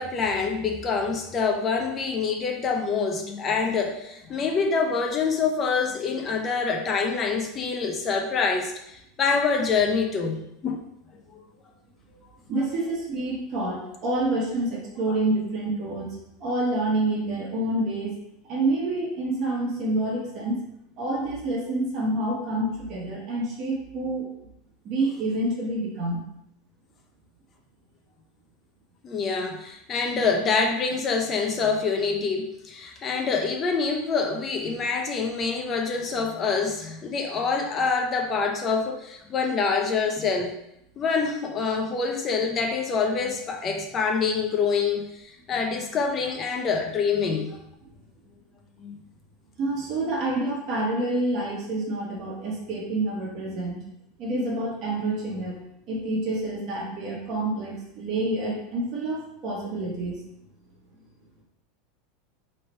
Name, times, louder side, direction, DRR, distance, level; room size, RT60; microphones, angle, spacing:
voice 1, 0.0-10.8 11.3-11.4 29.0-40.5 41.0-47.6 48.8-49.0, left 5 dB, 30° left, 2 dB, 0.6 m, -26 dB
voice 2, 12.5-18.2 18.5-20.6 21.0-24.3 24.8-26.2 49.6-53.8 54.2-55.6 55.9-60.2, right 2 dB, 40° right, -5 dB, 1.4 m, -28 dB
3.2 x 2.8 x 4.3 m, 0.79 s
supercardioid pair, 140°, 0 cm